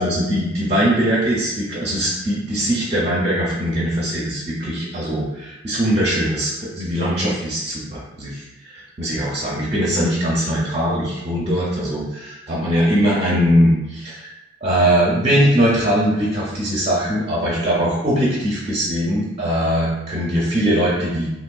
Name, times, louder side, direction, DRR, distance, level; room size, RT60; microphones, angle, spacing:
voice 1, 0.0-14.3 14.6-21.3, equal, 30° right, -5 dB, 0.6 m, -21 dB
3.4 x 3.0 x 2.2 m, 0.96 s
head